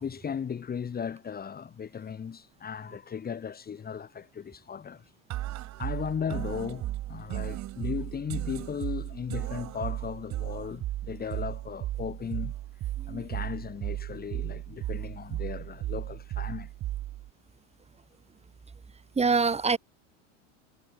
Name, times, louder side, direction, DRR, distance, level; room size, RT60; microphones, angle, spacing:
voice 1, 0.0-5.0 5.8-12.5 13.1-16.7, left 7 dB, 25° left, 2.1 m, -36 dB
sound 1, 5.3-17.3, right 14 dB, 45° right, 3.9 m, -35 dB
voice 2, 19.2-19.8, right 4 dB, 15° right, 2.8 m, -25 dB
supercardioid pair, 115°, 38 cm